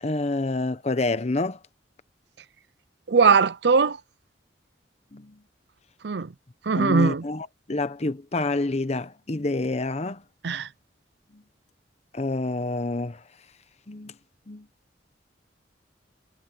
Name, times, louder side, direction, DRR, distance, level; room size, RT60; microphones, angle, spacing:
voice 1, 0.0-1.6 5.1-5.3 6.7-10.2 11.3-11.4 12.1-13.2 13.9-14.1 14.5-14.7, left 2 dB, 35° left, 0.9 m, -28 dB
voice 2, 3.1-4.0 6.0-6.3 6.6-7.2 10.4-10.7, right 5 dB, 65° right, 0.6 m, -20 dB
head